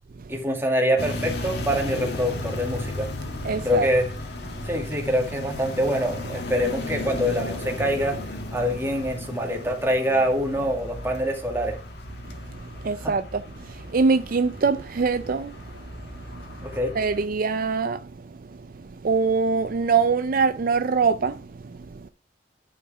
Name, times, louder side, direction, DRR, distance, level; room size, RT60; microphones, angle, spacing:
voice 1, 0.3-3.1 3.6-4.1 4.6-8.2 8.5-11.8 13.0-13.1 16.6-16.9, equal, 15° right, 2.1 m, -25 dB
sound 1, 1.0-17.3, left 1 dB, 65° left, 1.7 m, -35 dB
voice 2, 3.4-3.9 12.5-16.7 16.9-18.1 18.7-22.1, right 4 dB, 55° right, 0.5 m, -24 dB
10.0 x 4.9 x 4.7 m
head